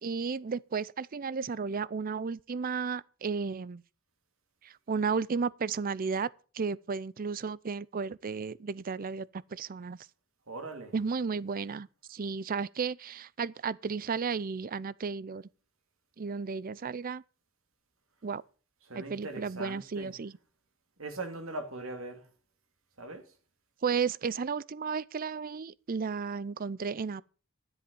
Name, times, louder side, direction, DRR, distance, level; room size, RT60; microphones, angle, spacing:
voice 1, 0.0-3.8 4.6-6.3 6.5-10.1 10.9-15.5 16.2-17.2 18.2-18.4 18.9-20.4 23.8-27.2, right 5 dB, 45° right, 0.5 m, -33 dB
voice 2, 10.5-11.0 18.8-20.2 21.0-22.3 23.0-23.3, right 2 dB, 75° right, 2.6 m, -40 dB
13.0 x 8.0 x 6.9 m
head